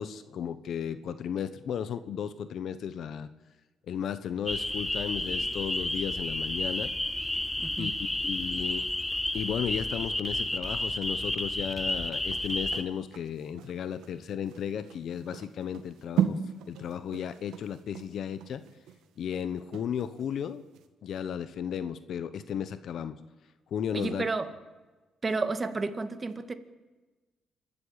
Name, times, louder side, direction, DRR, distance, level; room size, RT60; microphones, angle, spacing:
voice 1, 0.0-3.3 3.9-6.9 7.8-8.9 9.3-16.4 16.7-18.6 19.2-20.6 21.0-23.2 23.7-24.2, left 8 dB, 65° left, 12 dB, 1.1 m, -34 dB
sound 1, 4.5-12.8, left 1 dB, 10° left, 1.3 m, -31 dB
voice 2, 7.6-7.9 23.9-24.5 25.2-26.5, right 3 dB, 30° right, 9 dB, 1.9 m, -31 dB
sound 2, 11.8-20.3 20.7-20.9, right 9 dB, 85° right, 1.7 m, -36 dB
26.5 x 12.5 x 8.9 m, 1.2 s
cardioid pair, 90°, 0 cm